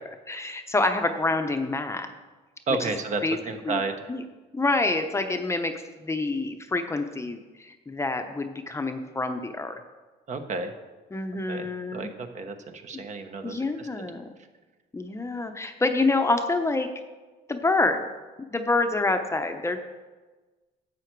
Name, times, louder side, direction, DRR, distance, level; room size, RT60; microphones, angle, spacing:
voice 1, 0.3-2.1 2.8-2.9 3.2-3.4 3.6-3.8 4.1-4.2 4.5-5.7 6.0-9.8 11.1-12.1 13.4-14.3 14.9-16.9 17.5-18.1 18.5-19.8, left 2 dB, 15° left, 6 dB, 0.8 m, -27 dB
voice 2, 2.7-3.9 10.3-10.7 11.5-11.7 11.9-13.9, right 3 dB, 45° right, 6 dB, 1.1 m, -31 dB
11.0 x 7.7 x 4.6 m, 1.3 s
cardioid pair, 110°, 17 cm